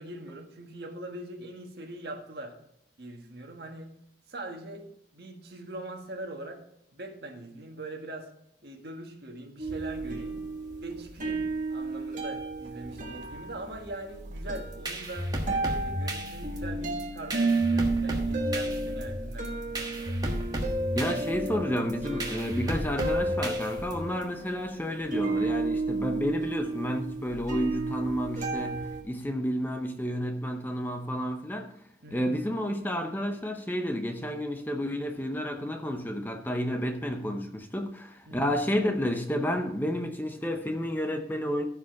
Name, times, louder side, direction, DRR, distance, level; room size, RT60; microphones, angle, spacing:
voice 1, 0.0-2.6 3.0-3.9 4.3-4.8 5.1-6.6 6.9-8.3 8.6-10.4 10.8-15.3 15.6-20.2 32.0-32.4 38.3-38.6, right 1 dB, 60° right, 1.6 m, -42 dB
sound 1, 9.6-29.0, right 2 dB, 45° right, 1.5 m, -32 dB
sound 2, 14.5-24.2, equal, 20° right, 1.4 m, -34 dB
voice 2, 20.9-31.7 32.1-41.7, equal, 10° left, 0.7 m, -31 dB
14.5 x 5.0 x 4.7 m
head